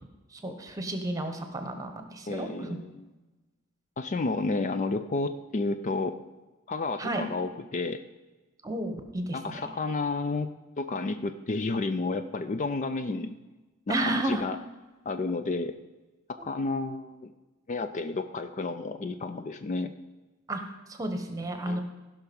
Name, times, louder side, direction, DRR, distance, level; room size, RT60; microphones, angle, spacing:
voice 1, 0.3-2.8 7.0-7.2 8.6-9.6 13.9-14.4 20.5-20.6 20.9-21.8, right 1 dB, 15° right, 6 dB, 1.1 m, -32 dB
voice 2, 2.3-3.1 4.0-6.2 6.7-8.0 9.3-10.5 10.8-13.4 13.9-14.6 15.1-15.8 16.4-17.3 17.7-19.9 21.6-21.8, left 3 dB, 35° left, 10 dB, 0.4 m, -31 dB
16.0 x 5.7 x 5.3 m, 1.2 s
head